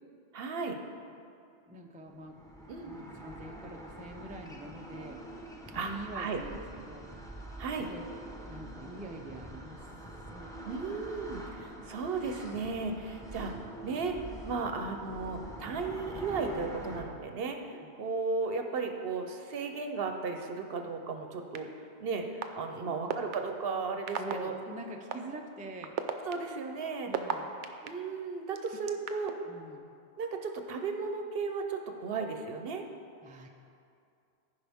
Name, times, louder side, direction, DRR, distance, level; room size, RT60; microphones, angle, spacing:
voice 1, 0.3-0.8 2.7-2.9 5.7-6.4 7.6-7.9 10.6-14.2 14.4-24.5 26.2-27.1 27.8-29.3 30.2-32.9, right 4 dB, 60° right, 5 dB, 0.9 m, -35 dB
voice 2, 1.7-2.4 2.8-5.2 5.7-7.1 7.9-8.1 8.5-9.9 10.3-10.7 17.7-17.9 22.8-23.0 24.2-25.9 27.1-27.5 29.5-29.9 33.2-33.5, right 2 dB, 15° right, 2 dB, 0.3 m, -44 dB
sound 1, 2.1-17.0, right 1 dB, 5° left, 0.8 m, -45 dB
sound 2, 21.5-21.6 22.4-22.5 23.1-23.4 24.1-24.3 25.1-25.2 25.8-27.9 28.6-29.3, right 9 dB, 90° right, 0.9 m, -32 dB
15.5 x 5.2 x 3.5 m, 2.5 s
omnidirectional pair, 1.2 m